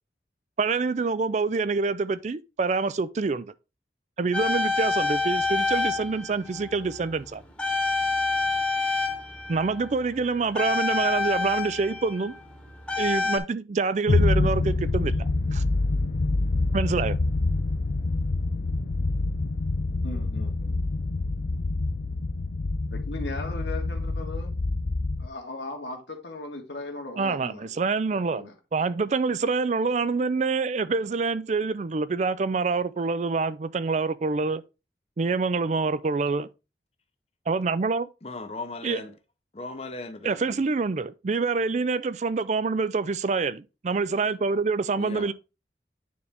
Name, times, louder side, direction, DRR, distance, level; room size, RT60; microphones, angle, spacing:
voice 1, 0.6-3.5 4.2-7.4 9.5-12.3 13.0-15.2 15.5-15.6 16.7-17.2 27.2-34.6 35.2-36.5 37.5-38.1 38.8-39.0 40.2-45.3, right 4 dB, 40° right, 0.4 m, -26 dB
sound 1, 4.3-7.3 7.6-13.4, left 3 dB, 5° left, 1.1 m, -27 dB
sound 2, 14.1-25.3, left 2 dB, 70° left, 0.6 m, -26 dB
voice 2, 20.0-20.8 22.9-24.5 25.2-27.7 28.1-28.5, left 2 dB, 85° left, 1.7 m, -38 dB
voice 3, 38.2-39.1 39.5-40.4 45.0-45.3, left 2 dB, 35° left, 0.7 m, -37 dB
9.4 x 4.0 x 3.4 m
head